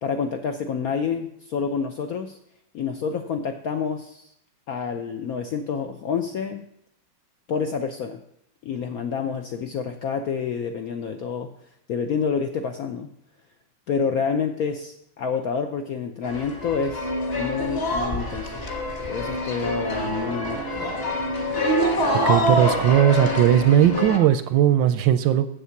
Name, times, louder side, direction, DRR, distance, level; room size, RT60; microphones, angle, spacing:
voice 1, 0.0-2.4 2.7-4.3 4.7-6.7 7.5-8.2 8.6-11.5 11.9-13.1 13.9-17.1 17.4-18.6 19.1-20.6, left 6 dB, 80° left, 6 dB, 0.8 m, -28 dB
sound 1, 16.2-24.2, equal, 30° left, 1.5 m, -25 dB
voice 2, 22.3-25.5, right 11 dB, 75° right, 12 dB, 1.1 m, -18 dB
7.9 x 7.4 x 7.1 m, 0.75 s
omnidirectional pair, 2.3 m